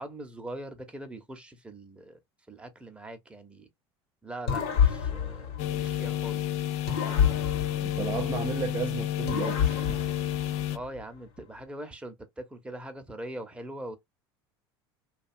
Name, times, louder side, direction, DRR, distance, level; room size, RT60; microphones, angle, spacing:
voice 1, 0.0-2.2 2.5-3.7 4.2-6.6 10.7-14.0, right 1 dB, 10° right, 0.8 m, -42 dB
sound 1, 4.5-6.4 6.9-8.8 9.3-11.0, left 8 dB, 70° left, 1.0 m, -29 dB
sound 2, 5.6-10.8, left 13 dB, 55° left, 0.4 m, -31 dB
voice 2, 7.8-10.0, right 7 dB, 35° right, 0.4 m, -34 dB
2.7 x 2.4 x 2.6 m
hypercardioid pair, 80°, 13 cm